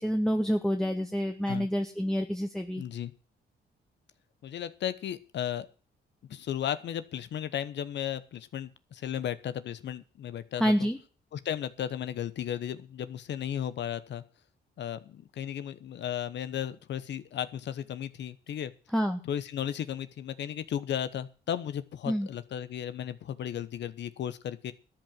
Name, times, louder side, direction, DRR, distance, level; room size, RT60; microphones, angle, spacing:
voice 1, 0.0-2.8 10.6-11.0 18.9-19.2 22.1-22.3, equal, 5° left, 4 dB, 1.2 m, -28 dB
voice 2, 2.8-3.1 4.4-5.7 6.3-10.9 11.3-14.2 14.8-18.7 19.2-24.7, left 10 dB, 70° left, 14 dB, 1.0 m, -35 dB
13.0 x 7.8 x 7.5 m, 0.37 s
cardioid pair, 75°, 19 cm